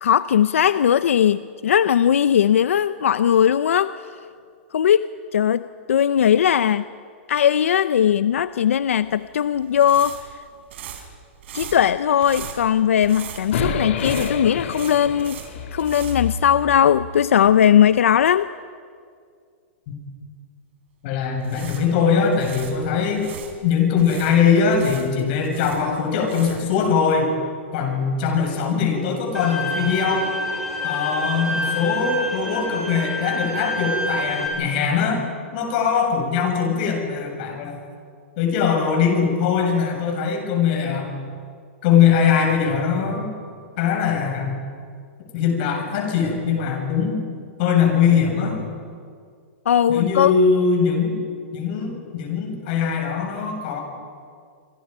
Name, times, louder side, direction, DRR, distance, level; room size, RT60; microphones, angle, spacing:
voice 1, 0.0-3.9 4.7-6.8 7.3-10.2 11.5-15.4 15.7-18.5 49.7-50.3, left 9 dB, 90° left, 14 dB, 0.6 m, -18 dB
sound 1, 8.9-17.0 17.3-17.5 21.2-23.5 24.0-26.8, right 9 dB, 60° right, 4.1 m, -38 dB
sound 2, 13.5-17.7, left 7 dB, 65° left, 2.6 m, -30 dB
voice 2, 21.0-23.3 23.6-27.3 27.7-30.3 30.8-35.2 35.5-37.8 38.4-41.1 41.8-43.3 43.8-44.6 45.3-47.2 47.6-48.6 49.9-51.2 51.5-53.8, left 6 dB, 45° left, 2 dB, 7.3 m, -21 dB
Bowed string instrument, 29.3-34.5, left 1 dB, ahead, 5.7 m, -27 dB
27.0 x 26.5 x 5.6 m, 2.2 s
hypercardioid pair, 155°, 7 cm